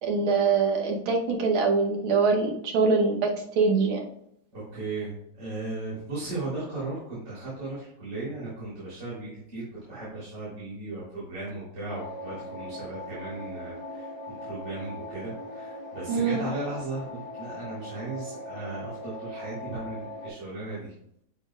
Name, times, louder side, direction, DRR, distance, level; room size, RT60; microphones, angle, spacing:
voice 1, 0.0-4.1 16.1-16.4, right 4 dB, 75° right, 1 dB, 2.1 m, -24 dB
voice 2, 4.5-20.9, right 2 dB, 55° right, -10 dB, 4.3 m, -36 dB
sound 1, 11.9-20.3, left 1 dB, 25° left, 1.6 m, -40 dB
10.5 x 7.0 x 2.4 m, 0.73 s
omnidirectional pair, 2.2 m